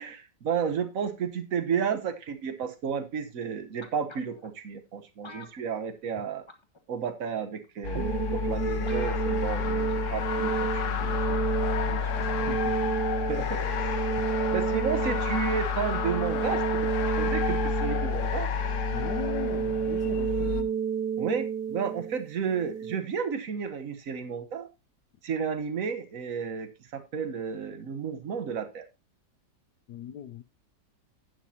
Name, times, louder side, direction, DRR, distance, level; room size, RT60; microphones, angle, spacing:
voice 1, 0.0-6.4 6.9-11.4 11.9-12.5 13.3-14.0 14.5-16.9 17.2-18.5 21.2-24.7 25.2-28.9, right 7 dB, 55° right, 1.4 m, -32 dB
sound 1, 3.8-4.5 5.2-6.2 6.5-6.8 7.6-7.7 8.3-8.4 8.5-8.6 8.9-9.5 10.0-10.4 10.7-10.8, left 2 dB, 20° left, 1.0 m, -47 dB
sound 2, 7.8-20.6, left 6 dB, 55° left, 1.0 m, -30 dB
sound 3, 7.9-23.0, right 7 dB, 75° right, 1.5 m, -31 dB
voice 2, 12.5-12.9 18.9-20.7 29.9-30.4, left 9 dB, 80° left, 1.3 m, -39 dB
11.0 x 9.4 x 2.8 m
omnidirectional pair, 1.8 m